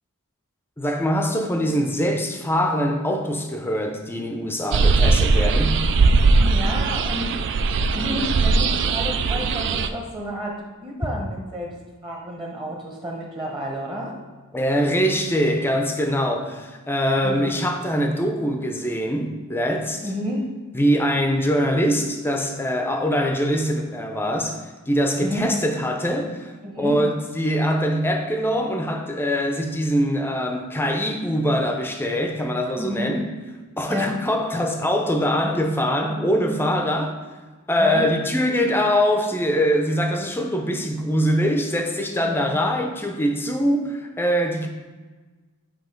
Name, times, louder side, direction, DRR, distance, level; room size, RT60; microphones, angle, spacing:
voice 1, 0.8-5.8 14.5-20.0 20.7-33.2 33.8-37.1 37.7-44.7, equal, 10° left, 0.5 m, -23 dB
sound 1, 4.7-9.9, right 3 dB, 55° right, 0.3 m, -19 dB
voice 2, 6.4-7.3 7.9-10.5 10.8-11.7 12.0-14.1 17.2-17.7 20.0-20.4 25.2-25.5 26.6-27.0 32.7-33.1 33.9-34.1 37.8-38.1 42.2-42.5, equal, 20° right, 1.0 m, -30 dB
7.9 x 2.9 x 4.4 m
head